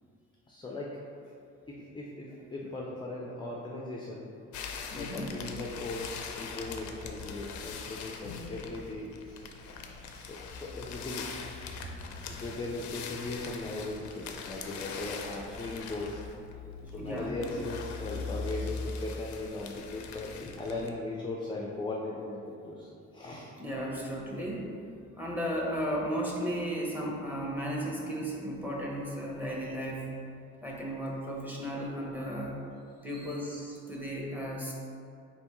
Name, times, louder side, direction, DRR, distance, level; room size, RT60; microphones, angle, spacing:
voice 1, 0.5-0.9 1.7-4.3 4.6-4.7 4.9-9.5 9.9-11.3 12.1-16.2 16.8-23.5 33.1-33.6, left 2 dB, 15° left, -2 dB, 0.4 m, -38 dB
sound 1, 4.5-20.9, left 5 dB, 75° left, 0.5 m, -41 dB
voice 2, 4.9-5.3 11.7-12.4 16.9-17.3 23.6-24.7 25.2-30.1 30.6-32.5 33.0-34.7, equal, 5° right, -3 dB, 0.8 m, -35 dB
4.3 x 3.4 x 3.0 m, 2.4 s
cardioid pair, 90°, 30 cm